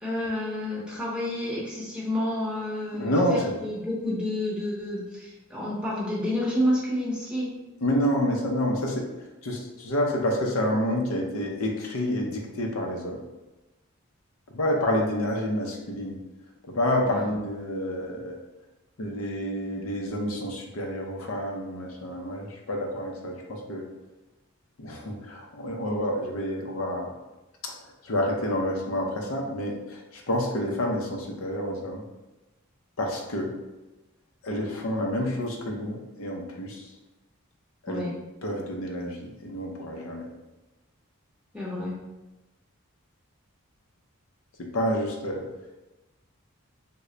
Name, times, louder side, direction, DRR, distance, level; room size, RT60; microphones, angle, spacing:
voice 1, 0.0-7.5 17.1-17.3 37.9-38.1 41.5-42.0, left 1 dB, 5° right, -6 dB, 0.7 m, -29 dB
voice 2, 2.9-3.5 7.8-9.1 9.4-13.2 14.5-16.2 16.6-18.4 19.0-23.9 24.8-27.1 27.6-27.7 28.0-32.0 33.0-33.5 34.4-36.8 37.8-38.1 38.4-40.3 44.6-45.5, equal, 75° left, 1 dB, 0.6 m, -28 dB
3.2 x 2.1 x 3.7 m, 1.1 s
head